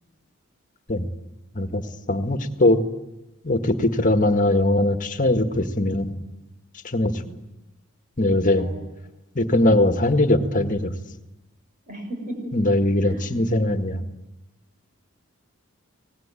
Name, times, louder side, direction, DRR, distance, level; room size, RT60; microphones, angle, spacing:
voice 1, 2.1-2.8 3.4-6.1 6.8-7.1 8.2-8.7 9.4-10.9 12.5-14.0, left 1 dB, 40° left, 8 dB, 1.8 m, -20 dB
voice 2, 11.9-12.5 13.0-13.2, right 1 dB, 40° right, 3 dB, 6.8 m, -35 dB
25.0 x 19.5 x 9.1 m, 0.98 s
head